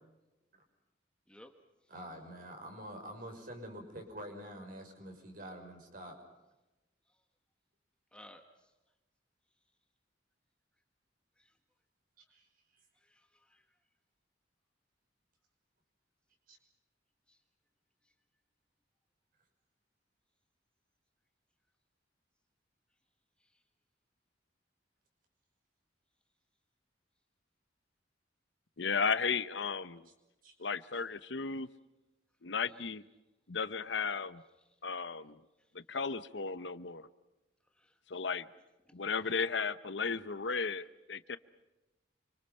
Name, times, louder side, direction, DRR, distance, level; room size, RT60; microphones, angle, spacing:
voice 1, 1.9-6.2 12.3-12.4 16.5-16.6 30.4-30.5, equal, 50° right, 4 dB, 5.9 m, -46 dB
voice 2, 8.1-8.7 11.4-11.6 12.9-13.8 17.3-17.4 18.0-18.1 23.4-23.6 32.6-32.9 34.6-34.8 35.6-35.7 37.6-38.0 38.8-39.0, left 1 dB, 5° left, 5 dB, 1.6 m, -59 dB
voice 3, 28.8-30.1 30.6-31.7 32.4-33.0 33.5-34.4 34.8-35.4 35.7-37.1 38.1-38.5 38.9-41.4, left 5 dB, 70° left, 14 dB, 0.9 m, -34 dB
27.5 x 25.5 x 5.7 m, 1.0 s
head